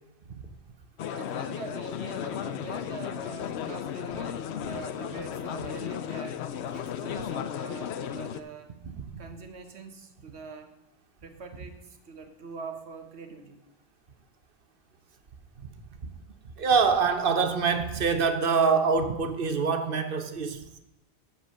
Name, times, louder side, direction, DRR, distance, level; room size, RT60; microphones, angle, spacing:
sound 1, 1.0-8.4, left 8 dB, 90° left, 0.9 m, -34 dB
voice 1, 1.1-6.4 6.7-8.7 9.2-10.7 11.2-13.6, right 4 dB, 85° right, 7 dB, 1.4 m, -44 dB
voice 2, 16.6-20.8, right 5 dB, 60° right, 9 dB, 1.1 m, -25 dB
7.9 x 6.8 x 6.2 m, 0.92 s
omnidirectional pair, 1.1 m